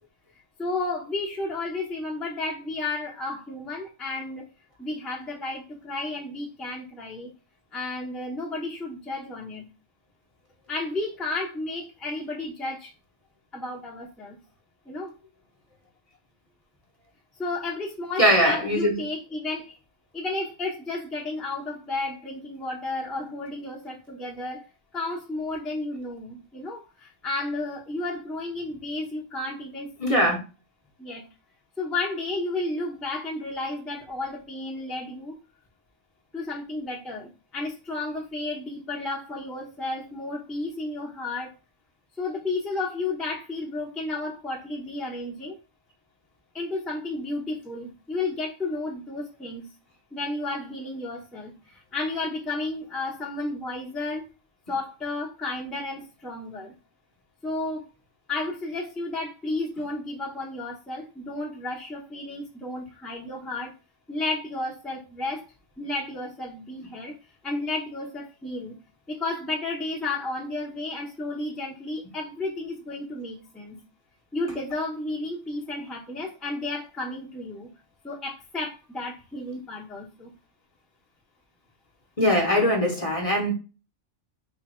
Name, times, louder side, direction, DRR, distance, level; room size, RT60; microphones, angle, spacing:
voice 1, 0.6-4.4 4.8-7.3 7.7-9.6 10.7-12.9 13.5-14.4 14.9-15.1 17.4-19.8 20.1-24.6 24.9-30.3 31.0-31.2 31.8-35.4 36.3-41.5 42.2-45.6 46.5-49.7 50.1-54.3 54.7-56.7 57.4-57.9 58.3-63.7 64.1-65.4 65.8-67.1 67.4-68.8 69.1-73.8 74.3-77.7 78.0-80.3, left 2 dB, ahead, 0.6 m, -32 dB
voice 2, 18.2-18.9 30.0-30.4 82.2-83.5, equal, 35° left, 0.8 m, -21 dB
3.3 x 2.2 x 4.3 m
omnidirectional pair, 1.2 m